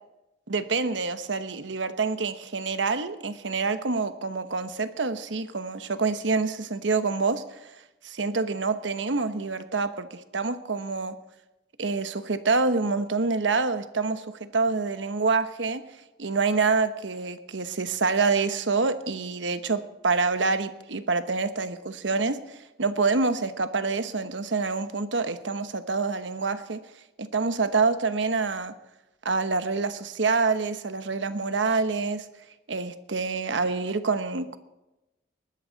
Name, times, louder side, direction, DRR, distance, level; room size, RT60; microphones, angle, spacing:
voice 1, 0.5-7.7 8.0-11.1 11.8-15.8 16.2-26.8 27.2-28.7 29.2-32.3 32.7-34.6, right 4 dB, 85° right, 11 dB, 1.0 m, -27 dB
21.0 x 12.0 x 4.0 m, 0.97 s
head